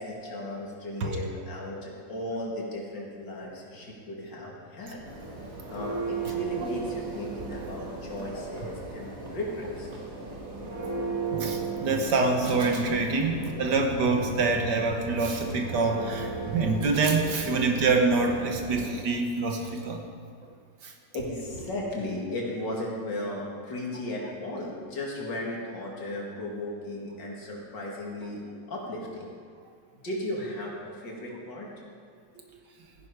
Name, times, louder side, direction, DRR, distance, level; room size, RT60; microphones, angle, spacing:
voice 1, 0.0-5.1 5.7-9.9 13.2-13.3 21.1-28.4 28.7-29.3 30.0-31.7 32.3-32.5, left 1 dB, 65° left, -2 dB, 2.8 m, -35 dB
Church bell, 4.8-19.1, right 3 dB, 45° right, 2.6 m, -36 dB
voice 2, 11.3-20.0 20.8-20.9, right 3 dB, 65° right, 3 dB, 1.7 m, -26 dB
15.0 x 10.5 x 4.8 m, 2.1 s
omnidirectional pair, 2.1 m